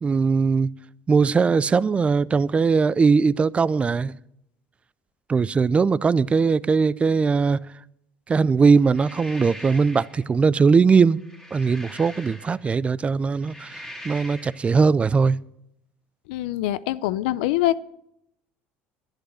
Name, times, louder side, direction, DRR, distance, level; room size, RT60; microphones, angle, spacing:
voice 1, 0.0-0.7 1.1-4.1 5.3-7.6 8.3-11.2 11.5-13.7 14.0-15.4, right 5 dB, 25° right, 0.4 m, -20 dB
sound 1, 8.8-10.2 11.1-12.8 13.3-14.7, left 1 dB, 5° left, 2.3 m, -42 dB
voice 2, 16.3-17.8, left 14 dB, 85° left, 0.5 m, -24 dB
11.5 x 10.5 x 6.3 m
supercardioid pair, 95°, 5 cm